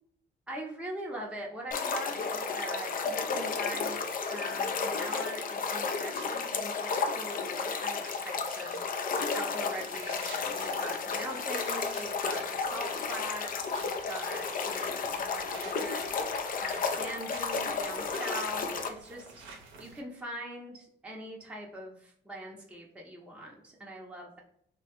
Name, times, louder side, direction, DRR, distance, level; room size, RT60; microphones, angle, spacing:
voice 1, 0.5-4.0 4.3-19.3 19.5-24.4, right 1 dB, 5° right, -2 dB, 0.7 m, -42 dB
sound 1, 1.7-18.9, left 5 dB, 45° left, 0.4 m, -33 dB
sound 2, 1.9-20.0, right 4 dB, 85° right, 0.6 m, -52 dB
3.0 x 2.1 x 2.9 m, 0.69 s
supercardioid pair, 70°, 20 cm